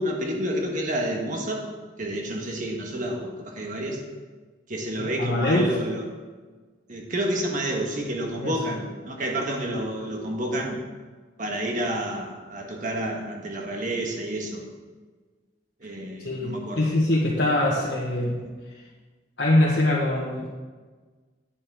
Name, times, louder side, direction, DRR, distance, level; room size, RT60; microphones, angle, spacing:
voice 1, 0.0-1.7 2.0-4.0 4.7-6.0 6.9-10.8 11.4-14.6 15.8-17.0 18.2-18.4, right 1 dB, 40° right, 0 dB, 1.5 m, -29 dB
voice 2, 5.0-5.7 8.4-8.5 16.2-18.4 19.4-20.5, left 1 dB, 70° left, -6 dB, 1.4 m, -23 dB
10.0 x 9.3 x 3.7 m, 1.4 s
head